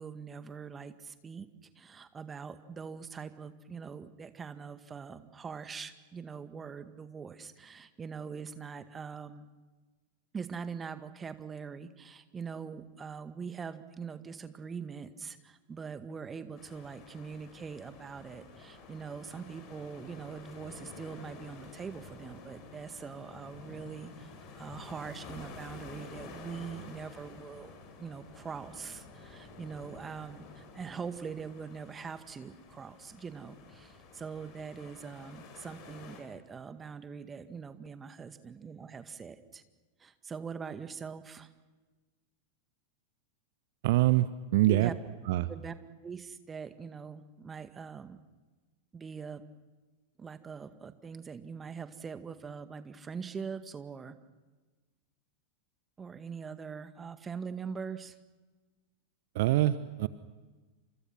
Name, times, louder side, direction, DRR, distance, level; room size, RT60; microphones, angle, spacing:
voice 1, 0.0-1.5 1.8-9.5 10.3-27.7 28.0-39.6 40.0-41.5 44.7-44.9 45.5-45.7 46.0-48.2 48.9-49.4 50.2-54.2 56.0-58.1, right 6 dB, 20° right, 10 dB, 1.9 m, -43 dB
sound 1, 16.6-36.2, left 4 dB, 35° left, 7.2 m, -50 dB
voice 2, 43.8-44.3 44.5-44.9 45.3-45.5 59.3-60.1, right 15 dB, 50° right, 15 dB, 1.0 m, -24 dB
30.0 x 27.5 x 6.0 m, 1.3 s
figure-of-eight pair, 90°, 0 cm